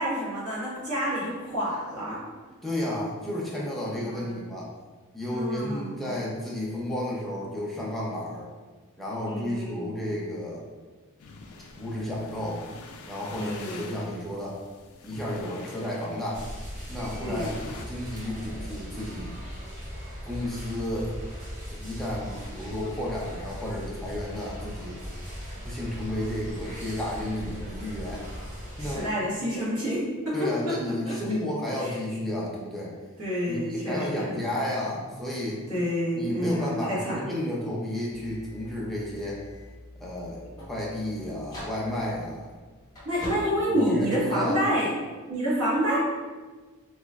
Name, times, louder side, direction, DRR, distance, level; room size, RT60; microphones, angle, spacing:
voice 1, 0.0-2.2 4.0-4.4 5.3-6.2 9.3-10.1 13.3-14.0 17.2-17.6 28.8-30.4 30.7-30.8 31.0-31.1 31.8-31.9 33.2-34.4 35.7-37.2 43.0-44.9 45.3-46.0, equal, 75° right, -8 dB, 1.4 m, -28 dB
voice 2, 2.6-4.7 5.1-8.5 9.0-10.6 11.8-12.6 13.1-14.6 15.0-16.4 16.9-17.5 17.9-19.4 20.3-21.1 21.7-25.0 25.5-28.3 28.8-29.1 30.3-32.9 33.5-35.6 36.1-39.4 40.0-42.6 43.7-44.6, left 1 dB, ahead, -6 dB, 0.6 m, -32 dB
sound 1, 11.2-17.9, left 3 dB, 70° left, 0.4 m, -46 dB
sound 2, 16.3-29.0, equal, 40° right, 1.2 m, -39 dB
sound 3, 38.1-44.6, equal, 15° left, 1.2 m, -44 dB
3.1 x 3.0 x 2.3 m, 1.3 s
head